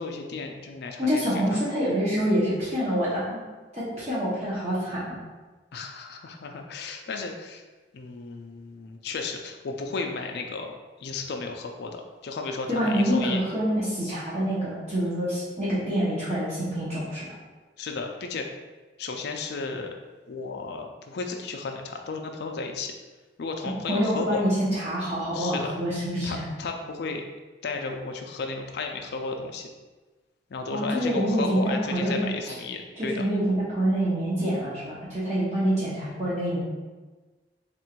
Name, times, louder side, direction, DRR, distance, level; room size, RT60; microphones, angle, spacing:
voice 1, 0.0-1.6 5.7-7.6 7.9-13.4 17.8-18.5 19.0-19.9 20.3-22.9 23.4-24.5 25.3-25.7 26.2-27.2 27.6-29.7 30.5-33.3, left 4 dB, 60° left, 3 dB, 0.4 m, -34 dB
voice 2, 1.0-3.4 3.7-5.2 12.7-17.2 23.9-26.4 30.7-32.5 33.0-36.6, equal, 40° right, -10 dB, 1.1 m, -26 dB
3.6 x 2.5 x 4.4 m, 1.3 s
head